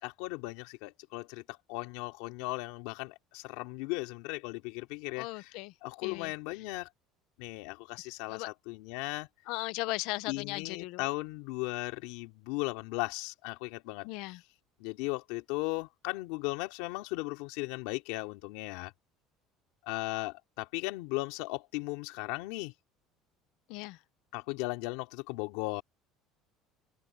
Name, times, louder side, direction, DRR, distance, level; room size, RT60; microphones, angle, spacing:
voice 1, 0.0-6.9 7.4-9.3 10.3-14.1 14.8-18.9 19.9-22.7 24.3-25.8, left 22 dB, 85° left, 3.0 m, -37 dB
voice 2, 5.2-5.7 6.0-6.3 8.3-8.5 9.5-11.1 14.0-14.4 23.7-24.0, left 20 dB, 65° left, 0.9 m, -37 dB
cardioid pair, 175°, 0 cm